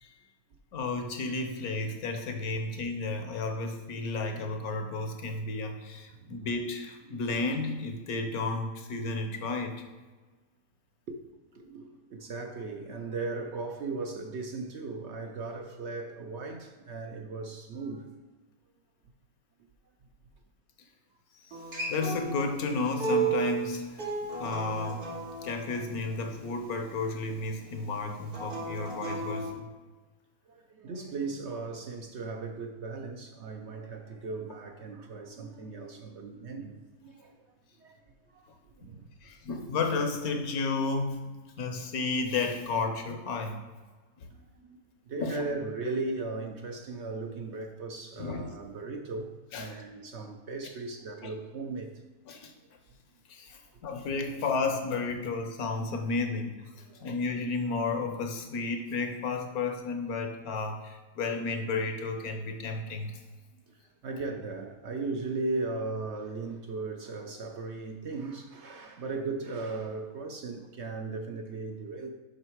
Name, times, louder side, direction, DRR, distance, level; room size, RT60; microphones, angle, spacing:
voice 1, 0.7-9.8 21.4-21.6 21.9-24.1 24.4-25.1 25.4-29.7 39.2-43.6 44.2-44.3 45.2-45.4 48.2-48.5 49.5-49.7 51.2-51.3 52.3-52.5 53.3-56.6 57.0-63.2, left 3 dB, 75° left, 1.4 m, -32 dB
voice 2, 11.5-18.1 30.5-37.3 37.8-38.0 38.3-39.1 44.3-44.8 45.1-51.9 56.7-57.1 64.0-72.1, right 3 dB, 60° right, 0.8 m, -37 dB
Acoustic guitar, 21.5-26.7 28.3-29.5, right 4 dB, 85° right, 2.7 m, -34 dB
6.9 x 5.5 x 4.6 m
omnidirectional pair, 1.6 m